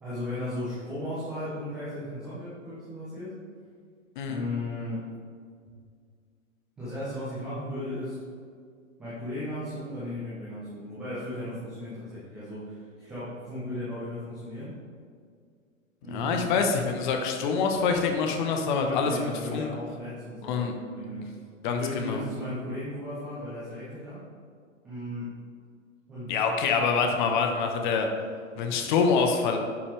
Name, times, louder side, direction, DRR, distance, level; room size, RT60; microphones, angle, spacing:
voice 1, 0.0-3.3 4.3-5.1 6.8-8.2 9.0-14.7 16.0-16.4 18.8-21.2 21.6-24.2 24.8-25.4 26.1-26.3, left 1 dB, ahead, -13 dB, 0.3 m, -36 dB
voice 2, 16.1-19.7 20.4-20.7 21.6-22.2 26.3-28.1 28.6-29.6, left 5 dB, 35° left, 4 dB, 1.0 m, -26 dB
10.5 x 5.6 x 3.3 m, 2.1 s
figure-of-eight pair, 110°, 41 cm